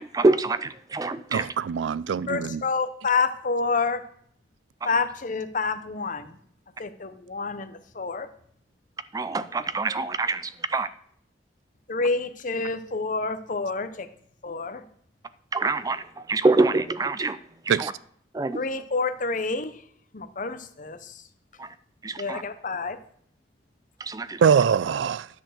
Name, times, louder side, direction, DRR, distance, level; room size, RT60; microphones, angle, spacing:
voice 1, 0.0-1.5 9.1-10.9 15.5-17.4 17.7-17.9 18.3-18.6 21.6-21.7 22.0-22.4 24.0-24.4, right 3 dB, 20° right, 0.4 m, -25 dB
voice 2, 1.3-2.6 17.7-17.9 24.4-25.3, right 7 dB, 90° right, 0.4 m, -23 dB
voice 3, 2.3-4.0 4.8-6.4 6.8-8.3 11.9-14.1 14.4-14.8 18.5-19.8 20.1-21.2 22.2-23.0, left 4 dB, 45° left, 0.8 m, -28 dB
10.0 x 4.4 x 7.4 m
head